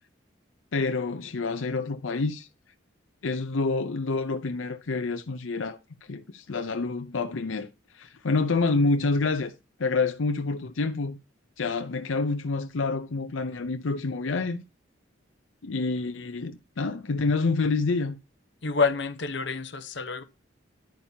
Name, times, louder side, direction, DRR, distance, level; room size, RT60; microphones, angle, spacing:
voice 1, 0.7-2.5 3.2-7.7 7.9-9.5 9.8-11.2 11.6-14.6 15.6-18.2, left 3 dB, 90° left, 0.6 m, -28 dB
voice 2, 18.6-20.2, left 4 dB, 65° left, 1.0 m, -27 dB
10.5 x 8.7 x 2.8 m
head